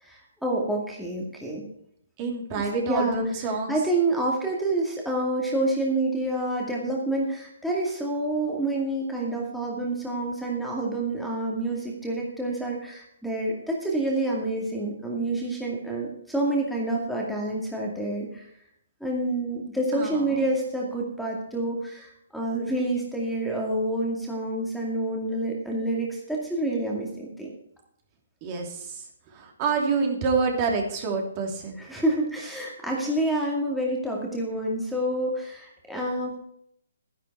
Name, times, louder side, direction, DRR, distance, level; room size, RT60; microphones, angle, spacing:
voice 1, 0.0-1.7 2.5-18.4 19.0-27.5 31.8-36.4, right 1 dB, ahead, -4 dB, 2.3 m, -28 dB
voice 2, 2.2-3.7 19.9-20.2 28.4-29.0 29.3-31.8, right 4 dB, 30° right, 2 dB, 3.0 m, -27 dB
12.5 x 11.0 x 4.7 m, 0.70 s
figure-of-eight pair, 140°, 0 cm